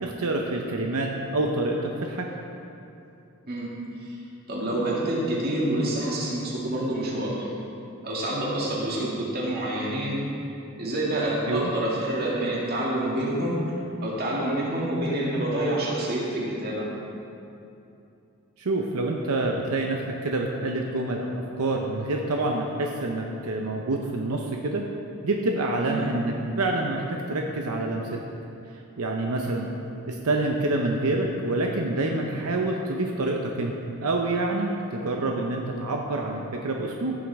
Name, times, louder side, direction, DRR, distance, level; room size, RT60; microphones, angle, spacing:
voice 1, 0.0-2.3 11.5-11.7 18.6-24.8 25.2-28.2 29.0-29.7 30.1-33.7 34.0-37.2, right 2 dB, 85° right, 1 dB, 0.8 m, -27 dB
voice 2, 4.5-7.5 8.0-10.2 10.8-13.6 14.0-16.9 25.8-26.1 29.4-29.6, right 1 dB, 45° right, -5 dB, 2.2 m, -27 dB
15.5 x 7.3 x 3.6 m, 2.8 s
head